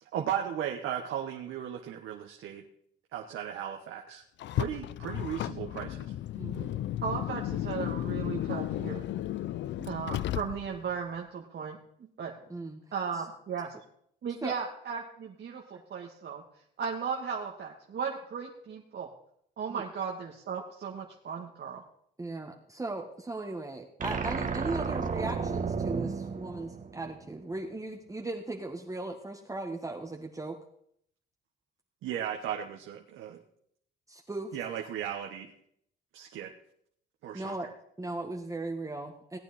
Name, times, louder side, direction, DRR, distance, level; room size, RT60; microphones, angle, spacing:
voice 1, 0.1-2.6 3.1-4.2 4.6-6.0 32.0-33.4 34.5-35.5 36.1-36.5 37.2-37.6, right 9 dB, 85° right, 1 dB, 1.2 m, -36 dB
Car, 4.4-10.9, left 13 dB, 65° left, 0.4 m, -34 dB
voice 2, 6.4-6.8 9.8-9.9 12.5-12.8 14.4-14.5 19.7-19.8 22.2-30.5 34.1-34.5 37.3-37.7 38.0-39.4, right 2 dB, 15° right, 1 dB, 1.4 m, -38 dB
voice 3, 7.0-9.0 9.8-12.3 12.9-13.7 14.2-16.4 16.8-19.1 19.6-21.8, right 6 dB, 60° right, 0 dB, 1.6 m, -36 dB
sound 1, 24.0-27.3, right 5 dB, 40° right, 1.5 m, -33 dB
18.0 x 9.2 x 4.2 m, 0.68 s
cardioid pair, 90°, 20 cm